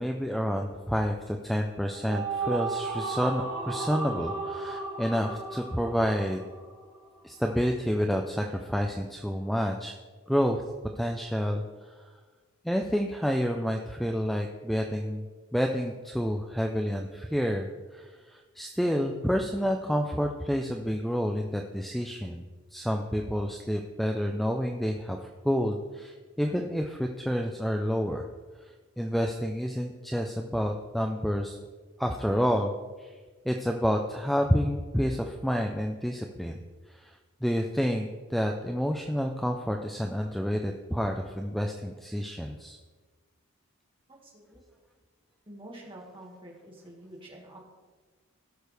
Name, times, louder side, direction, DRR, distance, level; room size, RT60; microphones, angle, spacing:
voice 1, 0.0-6.4 7.2-10.0 10.3-10.6 11.0-11.9 12.6-15.3 15.5-22.4 22.7-25.2 25.4-28.2 29.0-31.6 32.0-33.1 33.4-36.6 36.9-42.8, equal, ahead, 3 dB, 0.4 m, -29 dB
sound 1, 1.7-7.2, right 4 dB, 60° right, 1.5 m, -35 dB
voice 2, 44.1-44.6 45.5-47.6, right 1 dB, 25° right, -3 dB, 1.9 m, -47 dB
16.0 x 6.5 x 3.4 m, 1.4 s
head